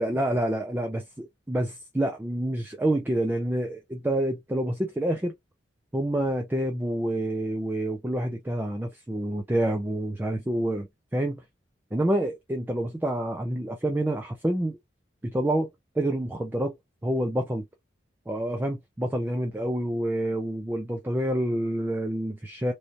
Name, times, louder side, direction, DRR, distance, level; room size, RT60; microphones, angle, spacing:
voice 1, 0.0-5.3 5.9-11.4 11.9-14.8 15.2-15.7 16.0-16.7 17.0-17.7 18.3-22.7, right 1 dB, 10° right, 0.4 m, -28 dB
3.1 x 2.6 x 2.6 m
head